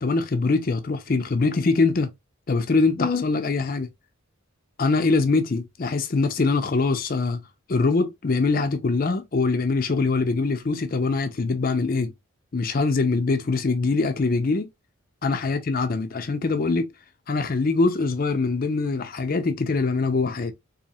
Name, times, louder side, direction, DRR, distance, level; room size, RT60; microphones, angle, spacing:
voice 1, 0.0-2.1 2.5-3.9 4.8-7.4 7.7-12.1 12.5-14.7 15.2-16.9 17.3-20.5, left 3 dB, 40° left, 0.5 m, -23 dB
4.1 x 2.7 x 2.7 m
head